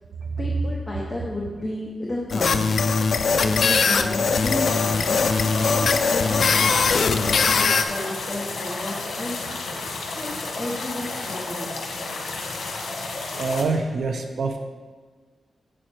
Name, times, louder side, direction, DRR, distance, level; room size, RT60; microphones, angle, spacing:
voice 1, 0.4-2.6 3.4-5.2 5.8-7.0 7.4-9.5 10.1-11.8, left 1 dB, 15° left, -3 dB, 0.8 m, -32 dB
sound 1, 2.3-7.8, left 5 dB, 55° left, 0.4 m, -21 dB
sound 2, 4.3-13.6, left 3 dB, 80° left, 1.3 m, -32 dB
voice 2, 13.4-14.6, right 4 dB, 60° right, 5 dB, 0.6 m, -25 dB
7.5 x 6.3 x 4.4 m, 1.5 s
wide cardioid pair, 180°, 0 cm